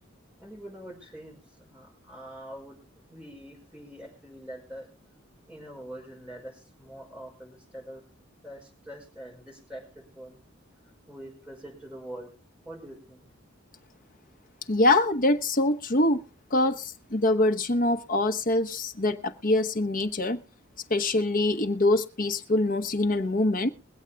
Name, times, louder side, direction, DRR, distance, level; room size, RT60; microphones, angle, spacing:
voice 1, 0.4-2.8 3.1-4.9 5.5-8.0 8.4-10.4 11.1-12.3 12.6-13.3, right 1 dB, 5° right, 5.4 m, -44 dB
voice 2, 14.7-16.2 16.5-20.4 20.9-23.7, left 2 dB, 45° left, 1.1 m, -24 dB
22.5 x 8.2 x 3.4 m
head